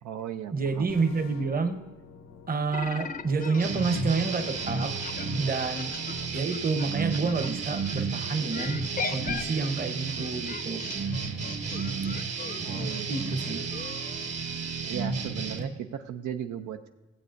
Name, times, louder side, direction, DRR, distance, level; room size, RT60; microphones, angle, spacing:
voice 1, 0.0-0.9 12.6-13.1 14.9-16.9, right 9 dB, 80° right, 7 dB, 0.6 m, -36 dB
voice 2, 0.5-1.8 2.5-4.9 5.4-5.9 6.3-8.8 9.1-10.8 13.1-13.7, right 4 dB, 30° right, 8 dB, 0.9 m, -29 dB
sound 1, 0.9-6.3, left 6 dB, 70° left, 0.8 m, -49 dB
sound 2, 2.7-8.0 8.5-14.4, left 5 dB, 30° left, 0.6 m, -39 dB
sound 3, 3.6-15.6, right 4 dB, 55° right, 1.3 m, -32 dB
15.0 x 8.1 x 2.6 m, 1.1 s
cardioid pair, 90°, 30 cm